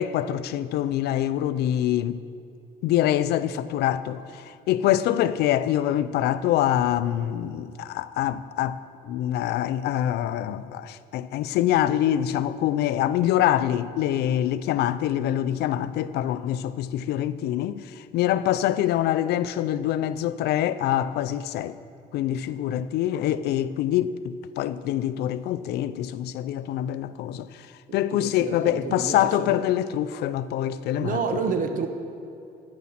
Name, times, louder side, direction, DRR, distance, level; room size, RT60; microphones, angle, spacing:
voice 1, 0.0-2.2 2.8-21.8 22.1-31.2, left 12 dB, 75° left, 0.4 m, -25 dB
voice 2, 27.9-29.7 31.0-31.9, right 5 dB, 50° right, 1.1 m, -30 dB
11.0 x 9.7 x 5.8 m
cardioid pair, 110°, 17 cm